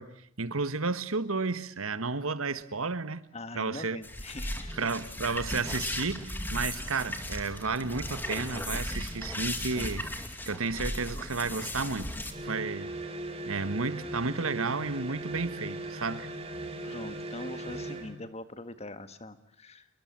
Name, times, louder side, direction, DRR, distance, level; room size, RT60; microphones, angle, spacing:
voice 1, 0.0-3.3 3.5-4.0 4.8-10.0 10.5-12.2 12.4-13.0 13.5-16.3, right 4 dB, 90° right, 1.5 m, -32 dB
voice 2, 3.3-4.8 16.8-19.9, left 2 dB, 30° left, 1.6 m, -42 dB
sound 1, 4.0-12.3, left 1 dB, 10° left, 2.4 m, -36 dB
sound 2, 12.2-18.2, right 2 dB, 30° right, 3.3 m, -38 dB
28.0 x 22.0 x 8.8 m
head